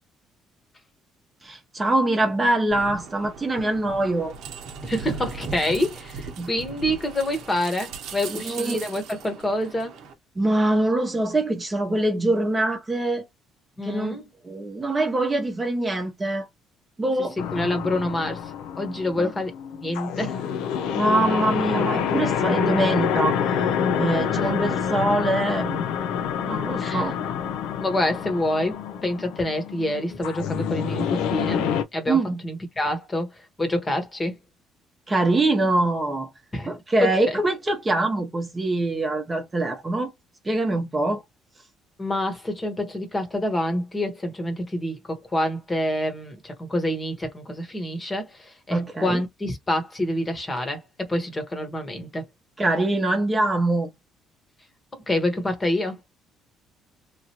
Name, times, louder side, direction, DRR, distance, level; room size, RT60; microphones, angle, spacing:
voice 1, 1.4-4.3 6.4-6.5 8.3-8.8 10.4-13.2 13.8-14.2 14.4-16.5 17.0-17.4 19.2-19.3 21.0-23.4 24.0-25.9 26.5-27.2 32.1-32.4 35.1-36.3 36.7-40.1 40.4-41.2 48.7-49.2 52.6-53.9, right 2 dB, 20° right, 0.9 m, -24 dB
sound 1, 2.7-10.1, right 5 dB, 70° right, 0.9 m, -38 dB
voice 2, 4.8-10.0 13.8-14.3 17.5-20.4 26.8-27.1 27.8-31.6 31.9-32.2 32.4-34.4 36.5-37.4 42.0-52.3 54.9-56.0, left 1 dB, 20° left, 1.1 m, -27 dB
sound 2, 17.4-31.8, left 8 dB, 85° left, 0.5 m, -27 dB
3.1 x 2.5 x 2.9 m
cardioid pair, 105°, 0 cm